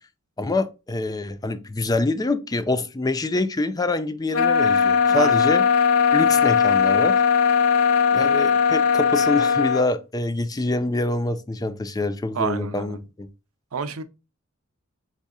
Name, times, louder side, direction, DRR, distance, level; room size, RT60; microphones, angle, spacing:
voice 1, 0.4-5.6 6.1-7.2 8.1-13.3, left 2 dB, 20° left, 0.4 m, -25 dB
sound 1, 4.3-9.9, left 6 dB, 80° left, 0.6 m, -19 dB
voice 2, 5.1-5.5 12.3-13.0 13.7-14.0, right 5 dB, 90° right, 0.6 m, -29 dB
4.1 x 3.6 x 3.6 m
head